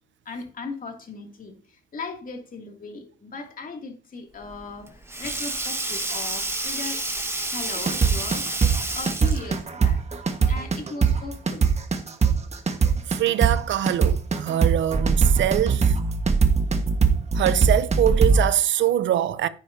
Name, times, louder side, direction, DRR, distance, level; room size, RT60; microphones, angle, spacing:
voice 1, 0.3-1.6 1.9-7.0 7.5-8.5 8.9-10.0 10.5-11.7, left 3 dB, 45° left, 2.6 m, -37 dB
Sink (filling or washing), 4.4-9.6, right 2 dB, 10° right, 1.7 m, -30 dB
sound 1, 7.8-18.4, right 5 dB, 35° right, 1.5 m, -20 dB
voice 2, 13.1-16.0 17.3-19.5, right 11 dB, 70° right, 0.7 m, -23 dB
10.5 x 9.8 x 2.8 m
cardioid pair, 90°, 20 cm